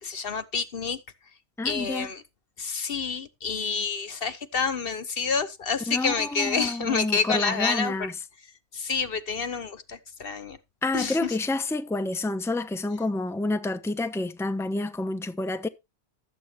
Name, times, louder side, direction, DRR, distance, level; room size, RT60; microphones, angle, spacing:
voice 1, 0.0-1.0 1.6-2.2 2.6-8.1 8.7-10.6 10.9-11.4, left 5 dB, 60° left, 1.2 m, -28 dB
voice 2, 1.6-2.1 5.9-8.1 10.8-15.7, left 2 dB, 5° left, 0.9 m, -29 dB
13.0 x 8.3 x 4.4 m
omnidirectional pair, 1.1 m